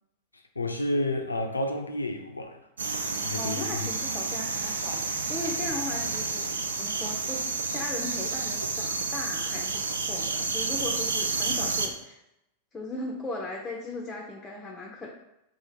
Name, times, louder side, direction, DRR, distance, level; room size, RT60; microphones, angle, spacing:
voice 1, 0.3-2.6 3.2-3.9, left 1 dB, 80° left, 5 dB, 0.4 m, -30 dB
sound 1, 2.8-11.9, right 3 dB, 70° right, 0.3 m, -30 dB
voice 2, 3.4-12.2 12.7-15.1, left 2 dB, 15° left, -1 dB, 0.5 m, -38 dB
2.9 x 2.5 x 4.0 m, 0.85 s
figure-of-eight pair, 90°, 0 cm